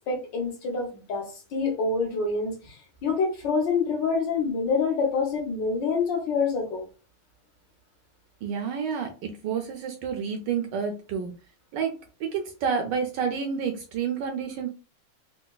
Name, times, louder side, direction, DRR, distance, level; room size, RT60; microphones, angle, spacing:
voice 1, 0.1-6.8, left 4 dB, 65° left, 1 dB, 1.5 m, -27 dB
voice 2, 8.4-11.3 11.7-11.9 12.2-14.7, right 6 dB, 75° right, 4 dB, 1.1 m, -29 dB
3.9 x 2.2 x 2.2 m, 0.34 s
omnidirectional pair, 2.2 m